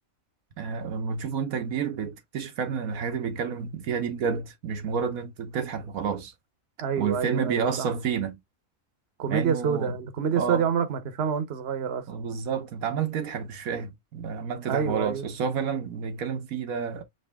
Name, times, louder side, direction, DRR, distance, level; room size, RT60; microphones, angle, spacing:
voice 1, 0.6-6.3 7.0-8.4 9.3-10.0 10.4-10.7 12.1-17.0, right 6 dB, 75° right, 1.3 m, -30 dB
voice 2, 6.8-7.9 9.2-12.0 14.6-15.3, right 7 dB, 50° right, 1.1 m, -27 dB
5.2 x 3.0 x 3.4 m
omnidirectional pair, 1.5 m